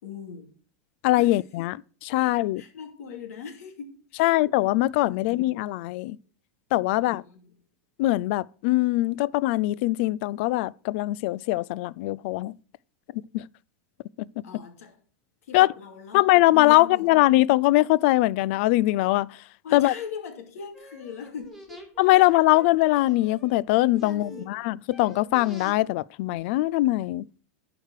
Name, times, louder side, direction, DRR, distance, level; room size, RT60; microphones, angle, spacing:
voice 1, 0.0-0.5 1.2-1.4 2.2-4.4 5.1-5.5 6.9-7.5 14.4-15.0 15.4-17.2 19.6-21.9 24.0-24.6, left 6 dB, 85° left, 2.6 m, -40 dB
voice 2, 1.0-2.6 4.2-6.2 6.7-7.2 8.0-12.5 13.3-13.4 14.2-14.3 15.5-15.7 16.1-19.4 19.7-19.9 22.0-27.3, left 18 dB, 50° left, 0.3 m, -22 dB
sound 1, 20.7-24.5 24.9-25.7 26.3-26.4, equal, ahead, 2.1 m, -47 dB
11.5 x 4.9 x 6.5 m
supercardioid pair, 155°, 8 cm